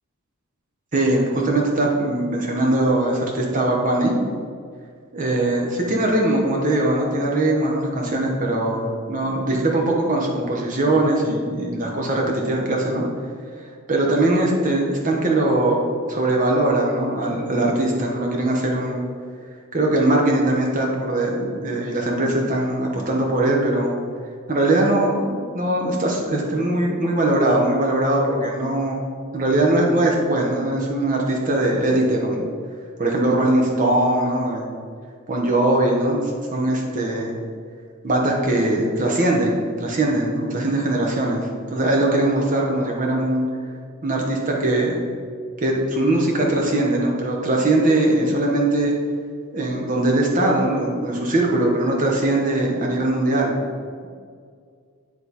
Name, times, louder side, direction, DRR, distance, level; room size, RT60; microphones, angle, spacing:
voice 1, 0.9-4.1 5.1-13.0 13.9-15.8 16.1-19.0 19.7-24.0 24.5-25.3 25.5-29.0 29.3-32.5 33.0-34.7 35.3-36.2 36.5-37.3 38.0-43.5 44.0-45.1 45.6-48.9 49.5-53.5, right 1 dB, 35° right, -1 dB, 1.0 m, -21 dB
9.4 x 3.2 x 4.1 m, 2.1 s
head